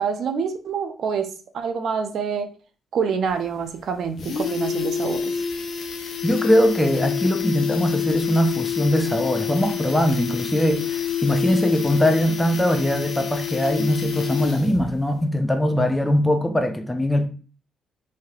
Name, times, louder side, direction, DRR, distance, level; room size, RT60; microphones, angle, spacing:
voice 1, 0.0-2.5 2.9-5.3, right 6 dB, 65° right, 0.4 m, -26 dB
sound 1, 3.3-3.4 3.7-3.8 4.0-14.9 15.2-15.3, left 8 dB, 60° left, 0.5 m, -28 dB
voice 2, 6.2-17.3, equal, 10° left, 0.4 m, -21 dB
3.2 x 2.7 x 2.3 m
cardioid pair, 90°, 0 cm